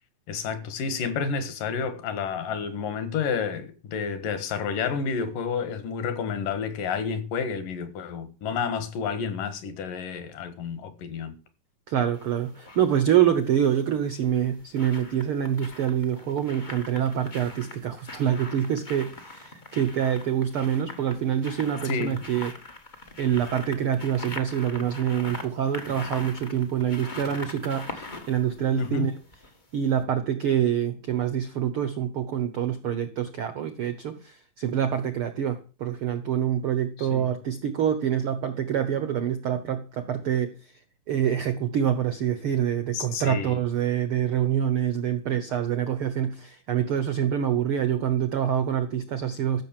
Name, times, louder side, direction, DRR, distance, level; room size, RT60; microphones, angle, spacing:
voice 1, 0.3-11.4 21.8-22.2 28.8-29.1 37.0-37.3 42.9-43.6, left 6 dB, 75° left, 3.1 m, -30 dB
voice 2, 11.9-22.5 23.2-29.1 29.7-40.8 41.1-49.6, right 9 dB, 70° right, 1.3 m, -26 dB
sound 1, 12.1-12.9 14.1-29.6 30.0-30.1, left 2 dB, 90° left, 0.4 m, -42 dB
14.0 x 6.7 x 7.4 m
omnidirectional pair, 3.9 m